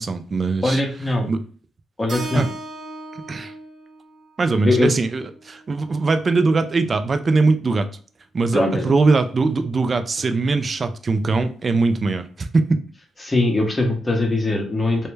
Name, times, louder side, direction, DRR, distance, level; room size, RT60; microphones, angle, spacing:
voice 1, 0.0-0.8 1.3-1.4 2.3-2.5 3.3-3.5 4.4-7.9 8.3-12.8, right 3 dB, 35° right, 9 dB, 0.3 m, -21 dB
voice 2, 0.6-1.3 2.0-2.5 4.6-4.9 8.5-8.9 13.2-15.1, left 2 dB, 20° left, 2 dB, 0.7 m, -21 dB
Keyboard (musical), 2.1-6.3, right 2 dB, 65° right, 0.8 m, -37 dB
2.1 x 2.1 x 3.2 m, 0.42 s
cardioid pair, 85°, 0 cm